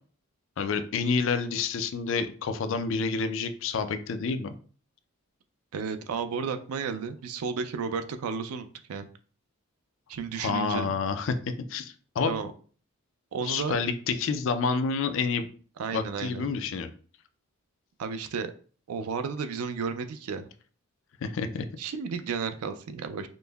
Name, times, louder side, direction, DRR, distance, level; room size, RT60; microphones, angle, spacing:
voice 1, 0.6-4.5 10.4-11.3 11.7-12.4 13.4-15.5 15.9-16.9 21.2-21.7, left 5 dB, 60° left, 9 dB, 0.3 m, -28 dB
voice 2, 5.7-9.1 10.1-11.0 12.3-12.5 13.3-13.8 15.8-16.5 18.0-18.5 18.9-20.5 21.8-23.3, right 5 dB, 85° right, 8 dB, 0.4 m, -33 dB
5.1 x 2.0 x 2.2 m, 0.41 s
head